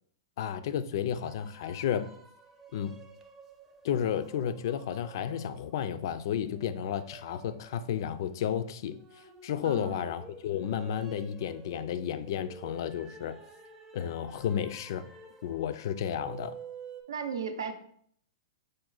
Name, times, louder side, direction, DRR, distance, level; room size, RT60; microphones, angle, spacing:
voice 1, 0.4-2.1 2.7-2.9 3.8-9.0 9.4-13.4 13.9-15.0 15.4-16.5, left 9 dB, 60° left, 0.3 m, -32 dB
sound 1, 1.1-17.0, right 5 dB, 15° right, 0.5 m, -51 dB
voice 2, 9.6-10.1 17.1-17.7, right 6 dB, 85° right, 0.5 m, -35 dB
4.9 x 2.3 x 3.8 m
hypercardioid pair, 130°, 2 cm